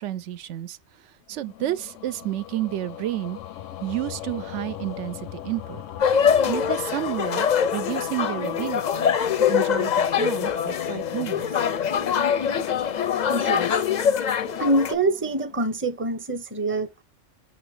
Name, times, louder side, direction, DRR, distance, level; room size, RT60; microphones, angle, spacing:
voice 1, 0.0-3.4 3.8-5.8 6.4-11.6, right 14 dB, 80° right, 0.9 m, -31 dB
sound 1, 1.3-15.7, left 12 dB, 90° left, 0.9 m, -36 dB
sound 2, 6.0-14.9, left 7 dB, 55° left, 0.5 m, -24 dB
voice 2, 12.9-13.8 14.6-17.0, right 1 dB, 15° right, 0.6 m, -25 dB
6.1 x 2.7 x 3.2 m
omnidirectional pair, 1.2 m